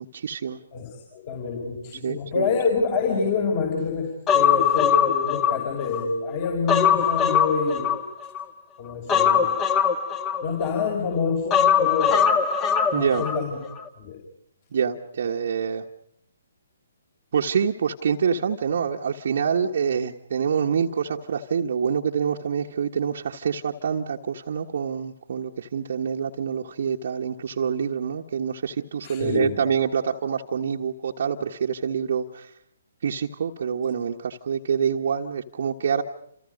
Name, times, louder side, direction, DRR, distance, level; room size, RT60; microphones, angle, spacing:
voice 1, 0.0-0.6 1.9-2.6 12.9-13.2 14.7-15.8 17.3-32.5 33.0-36.0, right 7 dB, 50° right, 1 dB, 1.4 m, -26 dB
voice 2, 0.7-8.0 8.8-9.6 10.4-12.4 12.9-13.6 14.0-14.2 29.0-29.6, left 5 dB, 35° left, 1 dB, 5.3 m, -27 dB
Human voice, 4.3-6.1 6.4-8.4 9.1-10.9 11.5-13.4 13.7-13.8, left 8 dB, 20° left, 1.8 m, -21 dB
30.0 x 27.5 x 5.4 m, 0.69 s
figure-of-eight pair, 130°, 0 cm